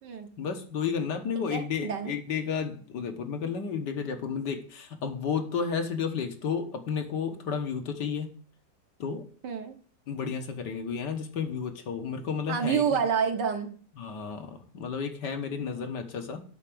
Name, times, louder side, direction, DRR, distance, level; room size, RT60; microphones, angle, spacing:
voice 1, 0.4-8.3 9.0-9.2 10.1-12.8 14.0-16.4, left 6 dB, 65° left, 5 dB, 1.8 m, -32 dB
voice 2, 1.5-2.1 9.4-9.8 12.5-13.8 15.6-15.9, right 7 dB, 65° right, 6 dB, 1.8 m, -29 dB
8.3 x 5.9 x 7.6 m, 0.44 s
omnidirectional pair, 2.0 m